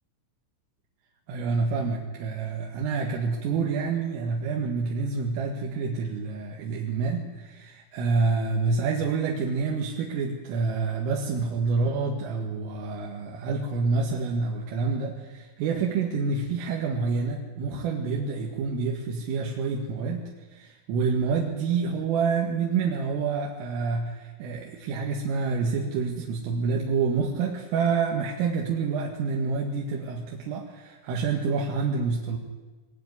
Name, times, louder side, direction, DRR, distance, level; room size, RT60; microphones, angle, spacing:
voice 1, 1.3-20.3 20.5-32.4, right 4 dB, 85° right, -1 dB, 4.5 m, -28 dB
22.0 x 20.5 x 9.7 m, 1.3 s
omnidirectional pair, 5.7 m